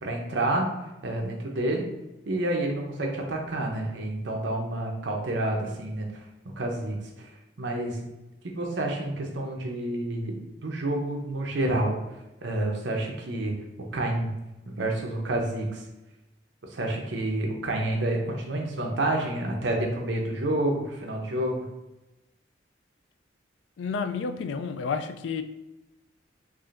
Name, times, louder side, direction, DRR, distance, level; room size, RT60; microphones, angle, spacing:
voice 1, 0.0-0.7 1.0-1.9 2.3-6.1 6.6-7.0 7.6-8.0 8.4-10.3 10.6-12.0 12.4-13.5 13.9-14.3 14.7-15.8 16.7-21.6, right 1 dB, 75° right, 1 dB, 0.8 m, -28 dB
voice 2, 23.8-25.4, left 5 dB, 75° left, 8 dB, 0.3 m, -30 dB
4.8 x 2.6 x 2.5 m, 0.99 s
head